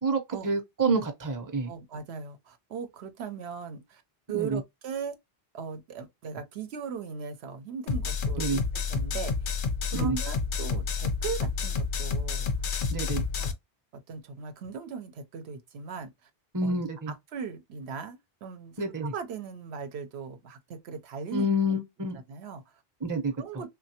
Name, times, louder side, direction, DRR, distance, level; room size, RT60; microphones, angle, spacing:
voice 1, 0.0-1.7 4.3-4.6 8.4-8.6 9.9-10.2 12.9-13.2 16.5-17.1 18.8-19.1 21.3-22.2 23.0-23.3, right 1 dB, 25° right, 0.6 m, -28 dB
voice 2, 1.7-4.0 4.3-5.2 5.5-9.5 9.9-12.5 13.4-13.5 13.9-16.3 16.6-16.7 17.1-21.8 22.3-22.8 23.1-23.7, right 6 dB, 85° right, 0.9 m, -38 dB
sound 1, 7.9-13.5, left 5 dB, 60° left, 0.7 m, -29 dB
3.2 x 2.2 x 2.7 m
omnidirectional pair, 1.1 m